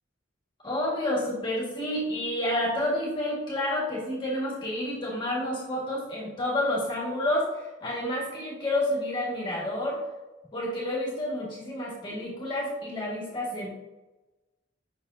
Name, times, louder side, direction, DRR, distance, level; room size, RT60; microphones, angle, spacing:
voice 1, 0.6-10.0 10.5-13.7, left 1 dB, 25° left, -5 dB, 1.6 m, -29 dB
7.1 x 5.8 x 2.6 m, 1.1 s
head